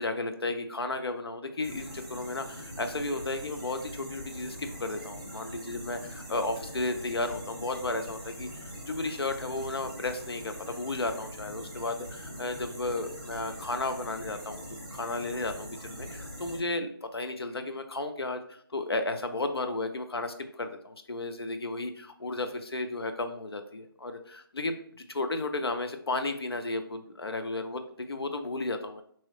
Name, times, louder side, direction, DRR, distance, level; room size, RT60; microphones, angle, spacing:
voice 1, 0.0-29.0, left 2 dB, 75° left, 7 dB, 0.5 m, -34 dB
sound 1, 1.6-16.6, equal, 15° right, 0.5 m, -43 dB
3.0 x 2.8 x 2.3 m, 0.62 s
figure-of-eight pair, 165°, 13 cm